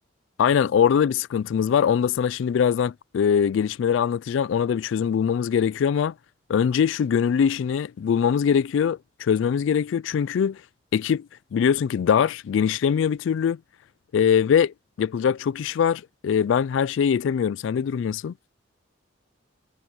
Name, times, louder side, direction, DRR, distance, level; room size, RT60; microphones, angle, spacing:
voice 1, 0.4-6.1 6.5-10.6 10.9-11.3 11.5-13.6 14.1-18.3, left 7 dB, 70° left, 0.3 m, -22 dB
head